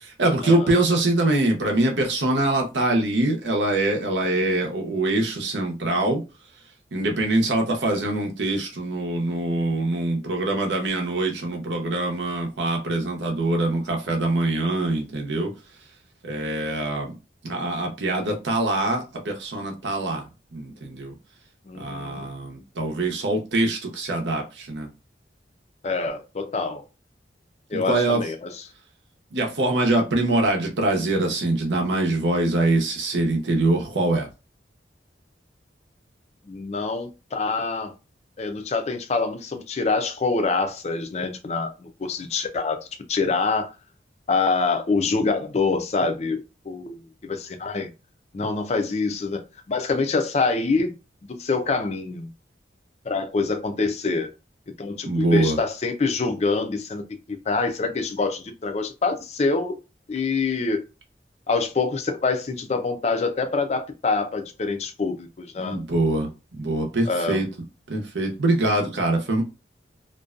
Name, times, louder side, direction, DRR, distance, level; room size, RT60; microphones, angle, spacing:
voice 1, 0.0-6.2 6.9-15.5 16.2-17.1 17.4-20.2 20.5-21.1 21.8-24.9 27.7-28.2 29.3-34.3 55.0-55.6 65.6-67.5 67.9-69.4, right 2 dB, 85° right, 0.7 m, -24 dB
voice 2, 21.7-22.3 25.8-26.8 27.7-28.6 36.5-37.9 38.4-42.8 43.1-43.7 44.3-46.4 46.7-47.9 48.3-50.9 51.3-52.3 53.1-54.3 54.8-59.8 60.1-60.8 61.5-65.8 67.1-67.4, left 4 dB, 35° left, 0.4 m, -25 dB
2.5 x 2.2 x 2.4 m
head